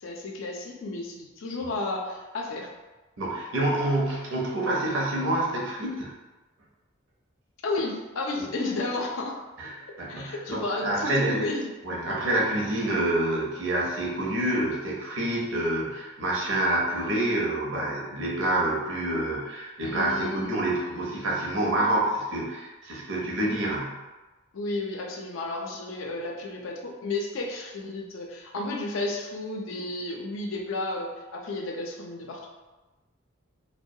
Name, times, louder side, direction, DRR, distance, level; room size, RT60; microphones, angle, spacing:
voice 1, 0.0-2.7 7.6-9.4 10.1-11.7 19.8-20.6 23.3-23.6 24.5-32.5, left 2 dB, 80° left, -1 dB, 0.4 m, -32 dB
voice 2, 3.2-6.1 8.4-8.5 9.6-9.7 10.0-11.5 11.8-24.0, right 1 dB, 75° right, -3 dB, 0.6 m, -27 dB
2.2 x 2.1 x 2.7 m, 1.1 s
head